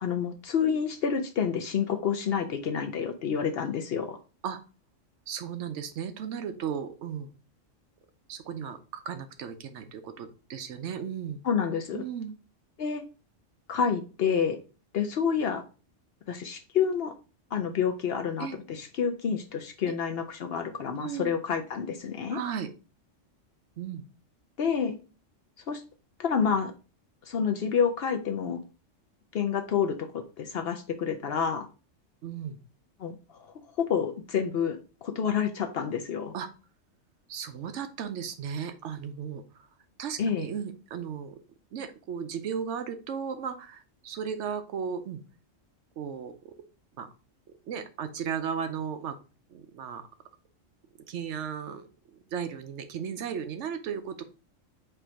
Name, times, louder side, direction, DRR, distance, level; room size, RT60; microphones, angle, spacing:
voice 1, 0.0-4.2 11.4-12.0 12.8-13.0 13.7-14.6 14.9-15.6 16.3-17.1 17.5-22.4 24.6-25.0 25.7-25.8 26.2-26.7 27.3-28.6 29.3-31.7 33.0-34.8 35.0-36.3 40.2-40.5, left 7 dB, 60° left, 6 dB, 0.7 m, -28 dB
voice 2, 5.3-7.3 8.3-11.4 11.9-12.3 18.4-18.6 19.8-20.0 21.0-21.3 22.3-22.7 23.8-24.0 32.2-32.6 36.3-36.5 37.3-39.7 40.0-41.4 41.7-45.2 46.0-46.5 47.0-47.1 47.7-49.2 49.5-50.1 51.1-54.2, right 7 dB, 70° right, 9 dB, 0.9 m, -35 dB
4.5 x 2.6 x 4.3 m, 0.33 s
omnidirectional pair, 1.3 m